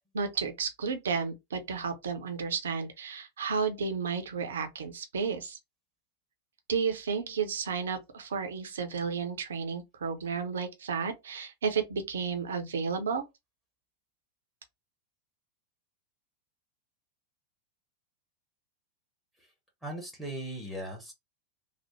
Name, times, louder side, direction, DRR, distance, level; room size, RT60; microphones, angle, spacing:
voice 1, 0.1-5.6 6.7-13.2, right 5 dB, 65° right, 0.7 m, -32 dB
voice 2, 19.8-21.1, right 1 dB, 5° left, 1.2 m, -38 dB
3.3 x 2.1 x 3.1 m
figure-of-eight pair, 90°, 0 cm